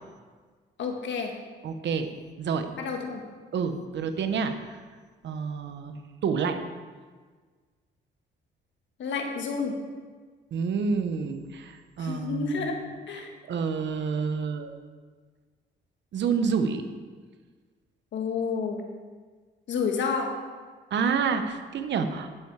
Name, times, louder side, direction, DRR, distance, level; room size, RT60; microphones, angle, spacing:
voice 1, 0.8-1.3 2.8-3.2 9.0-9.7 12.0-12.7 13.1-13.3 18.1-18.8 19.7-20.3, left 5 dB, 70° left, 3 dB, 1.7 m, -29 dB
voice 2, 1.6-2.1 2.4-2.6 3.5-4.8 5.2-6.0 6.2-6.6 10.5-12.8 13.5-14.7 16.1-16.8 20.9-22.3, right 5 dB, 65° right, 7 dB, 1.1 m, -28 dB
11.5 x 7.4 x 4.8 m, 1.5 s
cardioid pair, 90°, 20 cm